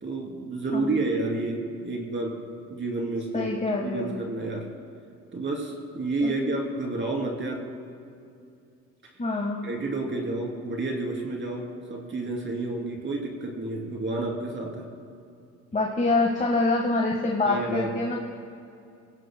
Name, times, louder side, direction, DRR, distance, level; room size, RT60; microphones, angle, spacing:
voice 1, 0.0-2.4 2.7-3.5 3.8-4.7 5.3-7.7 9.6-14.9 17.4-17.9, right 2 dB, 40° right, -1 dB, 3.3 m, -30 dB
voice 2, 0.7-1.0 3.3-4.2 6.2-6.5 9.2-9.7 15.7-18.2, left 3 dB, 25° left, -1 dB, 1.6 m, -26 dB
27.0 x 17.0 x 2.3 m, 2.5 s
cardioid pair, 90°, 30 cm